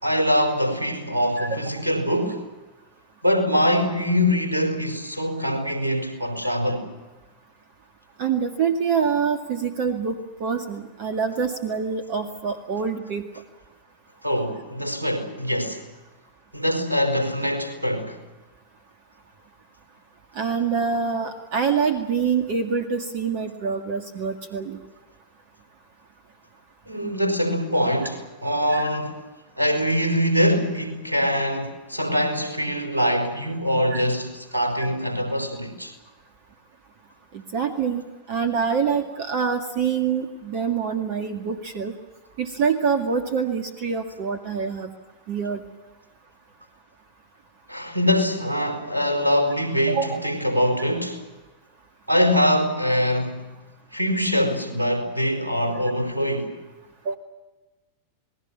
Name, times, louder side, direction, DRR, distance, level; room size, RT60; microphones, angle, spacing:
voice 1, 0.0-2.4 3.2-6.9 14.2-15.8 16.5-18.2 26.9-29.2 29.6-35.9 47.7-51.2 52.1-53.6 53.9-56.5, equal, 85° right, 4.5 m, -23 dB
voice 2, 8.2-13.3 20.4-24.8 28.7-28.9 33.9-34.0 37.5-38.0 38.3-41.9 42.4-44.9 45.3-45.6 49.9-50.2 57.1-57.2, right 6 dB, 45° right, 2.1 m, -25 dB
28.5 x 20.0 x 7.5 m
figure-of-eight pair, 90°, 0 cm